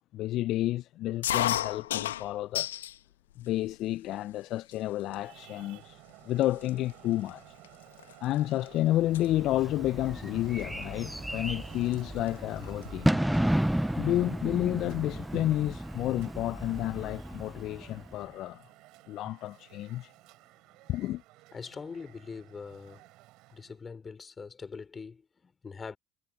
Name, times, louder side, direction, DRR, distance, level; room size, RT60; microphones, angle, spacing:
voice 1, 0.0-2.7 3.4-6.0 6.2-7.4 8.2-13.2 14.0-18.6 19.1-20.1 20.9-21.2, left 15 dB, 60° left, 0.7 m, -30 dB
sound 1, 1.2-3.0 3.4-4.1 4.7-4.8 5.1-5.5 6.1-6.2 6.4-8.7 8.9-9.3 10.6-10.8 11.9-12.0 12.3-12.4 12.6-13.5, left 12 dB, 80° left, 2.2 m, -33 dB
Traffic noise roadway noise, 5.1-23.8, right 19 dB, 65° right, 4.9 m, -54 dB
Bird / Fireworks, 9.0-18.2, right 1 dB, 5° right, 0.8 m, -33 dB
voice 2, 21.5-23.0 23.5-26.0, left 5 dB, 30° left, 5.5 m, -43 dB
hypercardioid pair, 60°, 0 cm